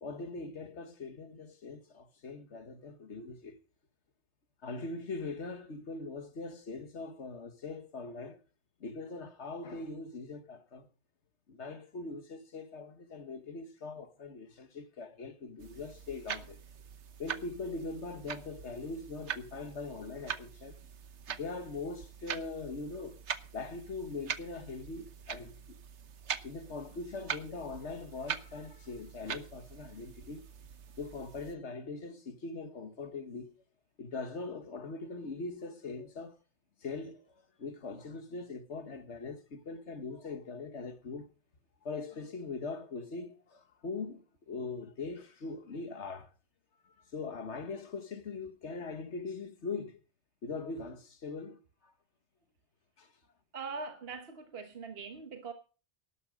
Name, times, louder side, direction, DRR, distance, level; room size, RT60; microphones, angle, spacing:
voice 1, 0.0-3.6 4.6-8.4 8.8-10.9 11.5-16.6 17.2-20.8 21.3-23.2 23.5-25.8 26.4-30.4 30.9-33.6 34.0-36.4 36.8-41.3 41.8-46.3 46.8-50.0 50.4-51.9 53.0-53.1, left 3 dB, 75° left, 1.7 m, -41 dB
sound 1, 15.6-31.5, right 7 dB, 75° right, 1.2 m, -43 dB
voice 2, 53.5-55.5, right 4 dB, 60° right, 1.5 m, -42 dB
12.5 x 11.5 x 5.1 m
omnidirectional pair, 1.2 m